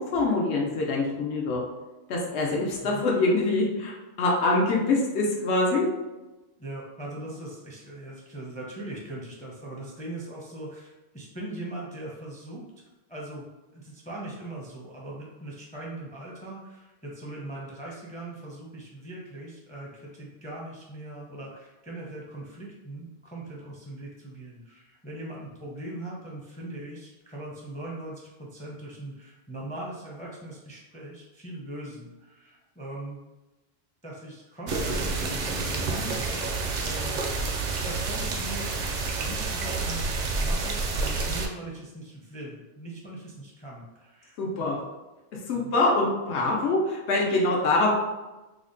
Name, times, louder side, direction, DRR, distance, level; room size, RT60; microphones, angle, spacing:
voice 1, 0.0-1.6 2.1-5.8 44.4-44.8 45.5-47.9, left 2 dB, 85° left, -2 dB, 1.0 m, -24 dB
voice 2, 6.6-12.6 13.1-13.5 13.7-33.2 34.0-37.4 37.8-38.7 39.2-44.7 45.5-45.7 46.6-46.7, right 1 dB, 10° left, -4 dB, 0.4 m, -40 dB
sound 1, 34.7-41.5, right 3 dB, 55° right, 0.5 m, -29 dB
3.4 x 2.1 x 3.8 m, 1.1 s
omnidirectional pair, 1.1 m